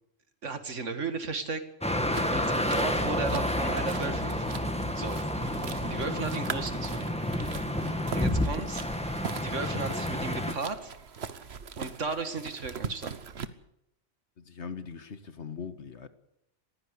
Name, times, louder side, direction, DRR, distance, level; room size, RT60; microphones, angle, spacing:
voice 1, 0.4-1.6 2.3-2.4 2.7-4.6 4.9-7.1 8.1-8.8 9.4-10.9 11.8-13.2, right 4 dB, 80° right, 9 dB, 2.3 m, -35 dB
sound 1, 1.8-10.5, left 1 dB, 5° left, 2.0 m, -30 dB
sound 2, 2.1-13.5, right 6 dB, 60° right, 1.3 m, -41 dB
voice 2, 14.4-16.1, left 6 dB, 65° left, 11 dB, 1.8 m, -40 dB
21.0 x 15.5 x 8.4 m, 0.79 s
omnidirectional pair, 1.3 m